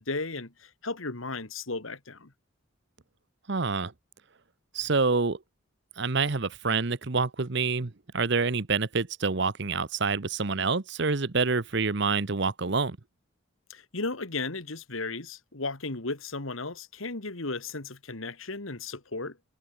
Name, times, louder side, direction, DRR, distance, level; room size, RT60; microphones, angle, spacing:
voice 1, 0.0-2.3 13.7-19.4, left 3 dB, 75° left, 2.2 m, -35 dB
voice 2, 3.5-3.9 4.7-5.4 6.0-13.0, right 4 dB, 55° right, 0.9 m, -27 dB
head